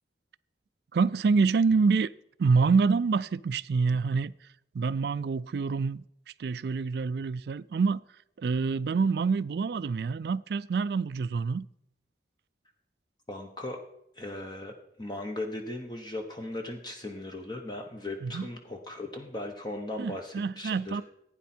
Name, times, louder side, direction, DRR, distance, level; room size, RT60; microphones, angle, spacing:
voice 1, 0.9-2.1 2.4-4.3 4.7-6.0 6.4-8.0 8.4-11.7 18.2-18.5 20.0-21.0, right 4 dB, 60° right, 0.3 m, -26 dB
voice 2, 13.3-13.8 14.2-21.0, left 1 dB, 25° left, 0.9 m, -38 dB
15.5 x 9.3 x 4.4 m
head